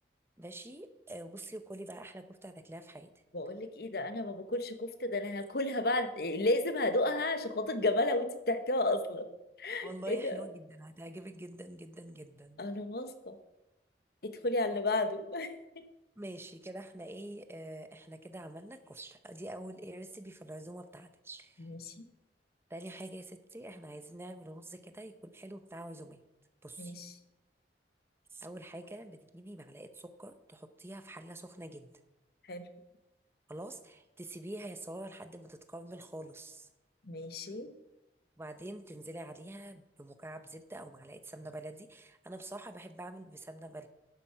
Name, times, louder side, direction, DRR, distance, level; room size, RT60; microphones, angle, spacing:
voice 1, 0.4-3.1 9.8-12.6 16.2-21.7 22.7-26.2 26.6-26.9 28.3-31.9 33.5-36.7 38.4-43.9, right 1 dB, 15° right, 9 dB, 0.8 m, -46 dB
voice 2, 3.3-9.3 9.6-10.4 12.6-13.3 14.2-15.5 21.6-22.0 26.8-27.1 32.5-32.7 37.0-37.7, left 2 dB, 60° left, 9 dB, 1.0 m, -32 dB
10.5 x 7.6 x 5.8 m, 0.97 s
head